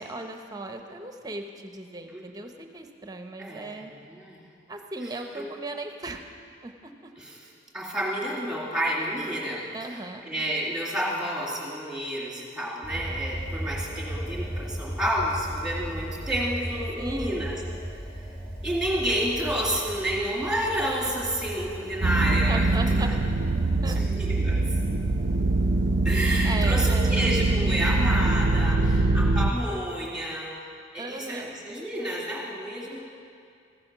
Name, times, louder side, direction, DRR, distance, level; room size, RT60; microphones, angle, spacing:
voice 1, 0.0-3.9 4.7-6.2 6.6-7.1 9.7-10.2 17.0-17.5 22.5-23.1 23.8-24.0 26.4-27.2 31.0-31.5, right 2 dB, 20° right, 5 dB, 0.8 m, -37 dB
voice 2, 3.4-3.7 4.0-4.4 5.0-5.4 7.2-7.4 7.7-17.6 18.6-22.7 23.1-23.2 23.9-24.6 26.0-30.6 30.9-33.0, equal, 5° right, -4 dB, 2.3 m, -30 dB
sound 1, 12.8-28.6, right 1 dB, 30° left, 2.8 m, -37 dB
sound 2, 22.0-29.5, right 2 dB, 55° right, 0.4 m, -23 dB
15.0 x 8.5 x 6.0 m, 2.3 s
head